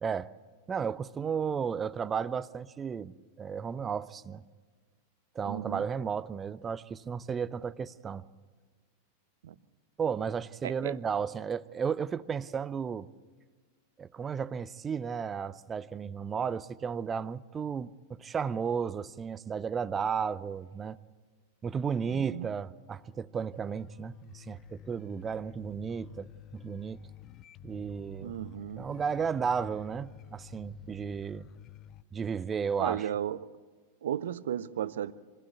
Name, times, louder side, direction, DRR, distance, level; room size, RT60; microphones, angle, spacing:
voice 1, 0.0-0.3 0.7-4.4 5.4-8.2 10.0-13.1 14.0-21.0 21.6-27.0 27.6-28.3 28.8-31.5 32.1-33.1, right 6 dB, 20° right, 0.6 m, -33 dB
voice 2, 5.5-5.9 9.4-9.5 10.6-11.0 22.0-22.5 28.2-28.9 32.8-33.5 34.0-35.1, right 10 dB, 60° right, 0.6 m, -34 dB
sound 1, 23.5-32.0, left 13 dB, 35° left, 0.5 m, -51 dB
25.0 x 15.5 x 8.4 m
figure-of-eight pair, 90°, 0 cm